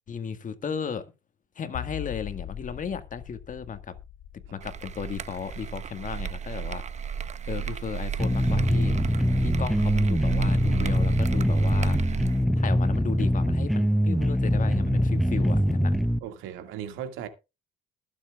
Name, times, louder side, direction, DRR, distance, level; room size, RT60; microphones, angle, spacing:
voice 1, 0.1-1.0 1.5-4.0 4.5-6.8 7.5-8.9 9.4-12.0 12.6-15.9, left 7 dB, 40° left, 1.7 m, -35 dB
sound 1, 1.7-9.0, left 11 dB, 75° left, 1.3 m, -43 dB
sound 2, 4.6-12.4, right 8 dB, 35° right, 0.8 m, -33 dB
sound 3, 8.2-16.2, equal, ahead, 0.6 m, -23 dB
voice 2, 16.2-17.3, right 9 dB, 85° right, 2.1 m, -37 dB
21.5 x 7.5 x 2.4 m
cardioid pair, 90°, 20 cm